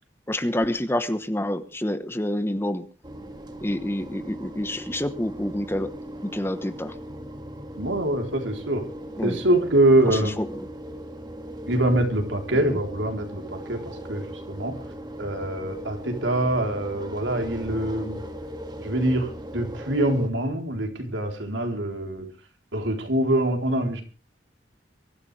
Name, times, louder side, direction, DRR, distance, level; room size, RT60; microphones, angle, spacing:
voice 1, 0.3-2.9 3.6-5.9 6.2-6.9 9.2-9.4 10.1-10.5 12.5-12.8, left 1 dB, 15° left, 11 dB, 1.1 m, -28 dB
sound 1, 3.0-20.3, equal, 25° right, 2.2 m, -38 dB
voice 2, 7.8-8.8 9.2-10.4 11.7-14.8 15.2-18.2 18.8-22.3 22.7-24.0, right 1 dB, 85° right, 4 dB, 3.8 m, -24 dB
23.5 x 13.5 x 3.4 m, 0.37 s
head